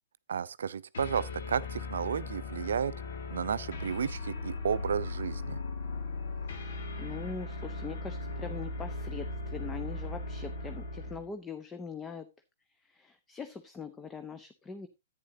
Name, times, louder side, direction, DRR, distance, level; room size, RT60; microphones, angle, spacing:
voice 1, 0.3-2.9 3.3-5.6, right 7 dB, 70° right, 0.5 m, -32 dB
sound 1, 0.9-11.3, left 3 dB, 65° left, 2.1 m, -38 dB
voice 2, 6.5-12.3 12.8-14.9, left 5 dB, 15° left, 0.8 m, -42 dB
10.5 x 9.3 x 2.8 m
figure-of-eight pair, 115°, 0 cm